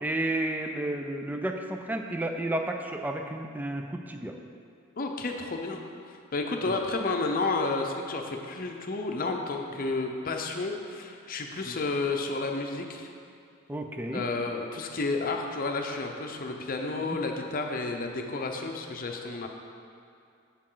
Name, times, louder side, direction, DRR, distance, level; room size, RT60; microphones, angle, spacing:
voice 1, 0.0-4.4 6.7-6.8 11.7-11.8 13.7-14.3 16.9-17.2, right 1 dB, 10° right, 4 dB, 0.5 m, -32 dB
voice 2, 5.0-5.8 6.3-13.1 14.1-19.5, left 3 dB, 45° left, 3 dB, 0.7 m, -31 dB
8.8 x 7.4 x 3.9 m, 2.5 s
head